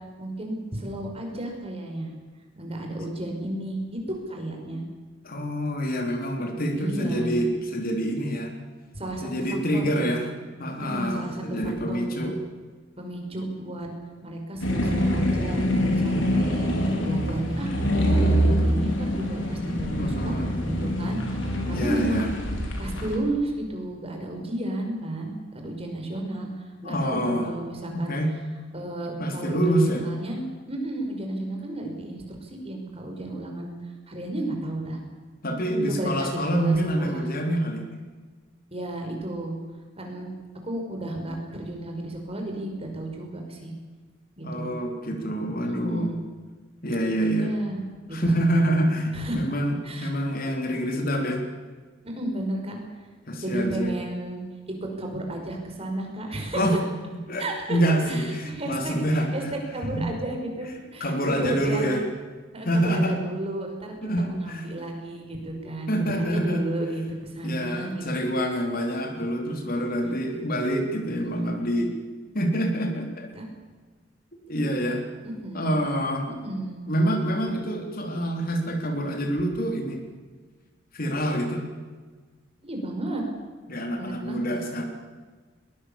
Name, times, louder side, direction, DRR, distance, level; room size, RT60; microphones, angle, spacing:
voice 1, 0.2-2.1 2.6-4.0 4.3-4.8 6.7-7.3 8.9-10.1 10.8-12.3 13.0-13.9 14.2-17.7 18.0-20.3 20.6-22.3 22.8-28.1 28.7-30.4 30.7-33.7 34.1-35.0 35.9-37.3 38.7-39.6 40.0-40.3 40.6-43.7 44.4-44.8 45.6-46.2 47.4-47.8 48.1-48.6 49.1-49.4 49.8-50.1 52.0-52.8 53.4-54.4 55.0-56.6 57.4-57.8 58.1-59.0 59.3-62.0 62.5-68.1 73.3-73.5 75.2-75.7 76.3-76.8 82.6-83.2 84.0-84.5, right 1 dB, 30° right, 2 dB, 5.5 m, -33 dB
voice 2, 5.2-8.5 9.2-10.3 10.6-12.4 20.0-20.5 21.7-22.3 26.8-27.5 27.9-28.3 29.2-30.0 35.4-37.9 44.4-46.1 46.8-47.5 48.1-51.4 53.3-53.9 56.5-56.8 57.1-59.3 59.9-60.0 61.0-62.0 62.6-63.2 64.0-64.7 65.6-66.6 67.4-71.9 72.3-73.3 74.5-75.0 75.5-76.3 76.9-80.0 80.9-81.6 83.7-84.8, equal, 50° left, 3 dB, 3.7 m, -26 dB
sound 1, 14.6-23.2, equal, 75° left, 4.4 m, -25 dB
22.0 x 21.0 x 7.2 m, 1.4 s
head